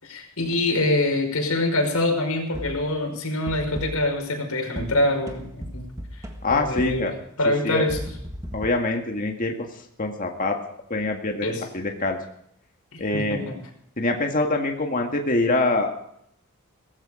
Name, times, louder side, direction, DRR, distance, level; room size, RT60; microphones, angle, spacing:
voice 1, 0.0-5.9 6.5-7.1 7.4-8.0 11.4-11.6 12.9-13.6, left 2 dB, 80° left, 2 dB, 5.4 m, -25 dB
sound 1, 2.5-2.9 3.5-4.2 4.8-7.2 7.9-8.7, equal, 15° right, 1.6 m, -36 dB
voice 2, 6.4-7.1 7.6-7.8 8.5-9.5 10.0-10.6 10.9-12.2 13.0-13.4 14.0-15.9, left 2 dB, 40° left, 2 dB, 1.9 m, -24 dB
17.5 x 15.0 x 5.1 m, 0.71 s
head